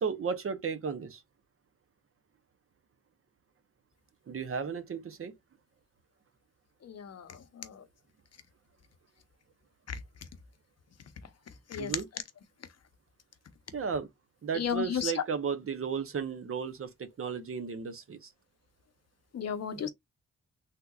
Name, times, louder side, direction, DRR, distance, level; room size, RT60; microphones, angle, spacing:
voice 1, 0.0-1.2 4.3-5.3 11.8-12.1 13.7-14.1 14.4-18.3 19.8-19.9, right 6 dB, 50° right, 0.7 m, -34 dB
voice 2, 6.8-7.8 11.7-11.9 14.5-15.1 19.3-19.9, left 7 dB, 60° left, 0.7 m, -34 dB
3.5 x 2.7 x 2.3 m
wide cardioid pair, 110°, 29 cm